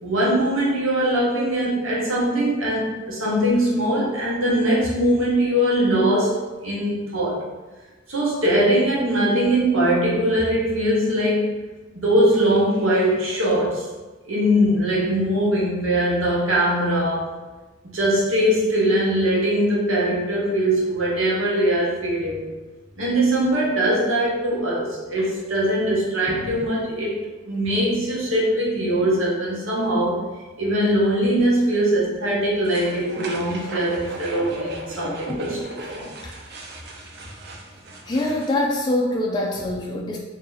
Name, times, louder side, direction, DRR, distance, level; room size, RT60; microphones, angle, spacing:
voice 1, 0.0-7.4 8.1-11.5 11.9-13.9 14.2-17.3 17.8-22.4 23.0-27.2 27.4-30.2 30.6-36.1, right 1 dB, 85° right, -5 dB, 1.1 m, -21 dB
sound 1, 32.6-38.6, right 1 dB, 50° right, 0.5 m, -36 dB
voice 2, 38.1-40.2, left 1 dB, 20° left, -1 dB, 0.3 m, -25 dB
2.8 x 2.7 x 3.8 m, 1.2 s
head